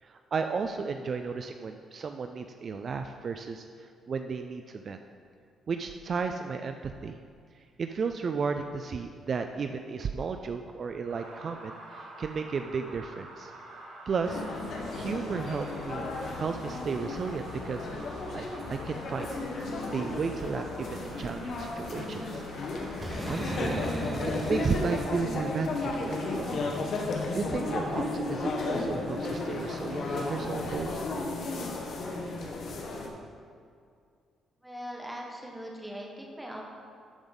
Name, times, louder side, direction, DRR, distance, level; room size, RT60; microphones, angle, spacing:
voice 1, 0.0-5.0 5.7-7.2 7.5-13.5 14.1-14.4 14.9-17.9 18.3-19.4 19.9-22.4 23.0-23.8 24.4-26.5 27.3-31.1, right 5 dB, 50° right, 6 dB, 0.4 m, -34 dB
sound 1, 11.1-26.6, right 2 dB, 90° right, 1.8 m, -48 dB
sound 2, 14.2-33.1, left 3 dB, 60° left, 1.2 m, -34 dB
Boom, 23.0-25.7, right 1 dB, 25° right, 1.2 m, -37 dB
voice 2, 34.6-36.7, equal, 5° right, -1 dB, 1.5 m, -40 dB
12.0 x 5.1 x 3.9 m, 2.3 s
cardioid pair, 90°, 0 cm